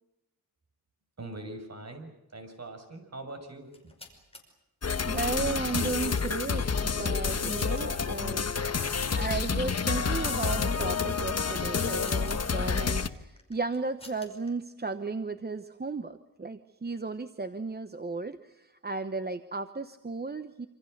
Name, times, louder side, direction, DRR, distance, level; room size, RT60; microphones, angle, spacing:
voice 1, 1.2-3.9, right 2 dB, 45° right, 5 dB, 6.4 m, -42 dB
sound 1, 3.6-4.4 5.3-6.5 7.2-7.8 8.1-8.3 9.0-9.2 9.6-10.6 11.7-12.4 13.4-14.5, left 2 dB, 15° left, 5.4 m, -51 dB
sound 2, 4.8-13.1, left 5 dB, 45° left, 1.3 m, -29 dB
voice 2, 5.1-8.5 9.2-20.7, right 3 dB, 25° right, 10 dB, 1.0 m, -35 dB
27.0 x 26.5 x 6.7 m, 0.97 s
wide cardioid pair, 140°, 36 cm